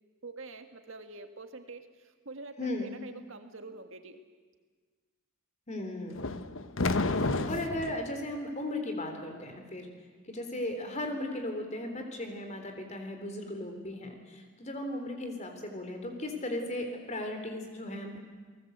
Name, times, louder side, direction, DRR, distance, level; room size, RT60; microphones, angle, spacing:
voice 1, 0.2-4.2, right 3 dB, 65° right, 7 dB, 1.9 m, -46 dB
voice 2, 2.6-2.9 5.7-6.2 7.4-9.9 10.3-18.2, left 1 dB, 35° left, 5 dB, 3.7 m, -36 dB
sound 1, 6.1-8.0, left 3 dB, 65° left, 1.1 m, -30 dB
29.5 x 19.0 x 8.1 m, 1.5 s
head